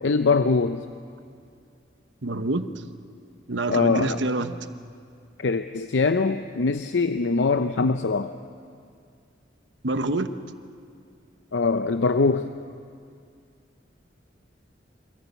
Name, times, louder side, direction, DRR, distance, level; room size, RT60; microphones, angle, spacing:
voice 1, 0.0-0.8 3.7-4.2 5.4-8.3 11.5-12.5, left 4 dB, 75° left, 9 dB, 0.6 m, -22 dB
voice 2, 2.2-2.8 3.5-4.7 9.8-10.3, right 2 dB, 75° right, 10 dB, 1.0 m, -27 dB
25.0 x 16.0 x 8.2 m, 2.3 s
head